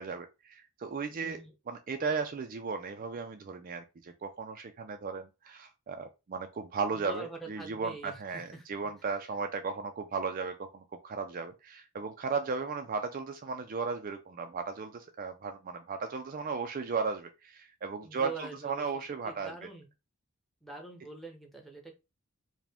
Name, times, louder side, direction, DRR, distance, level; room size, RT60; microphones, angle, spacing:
voice 1, 0.0-1.4 1.7-19.5, right 5 dB, 40° right, 6 dB, 0.4 m, -36 dB
voice 2, 1.2-1.5 6.9-8.7 9.0-9.3 18.0-19.9 20.6-21.9, right 3 dB, ahead, 2 dB, 0.8 m, -45 dB
4.8 x 2.2 x 3.4 m, 0.26 s
head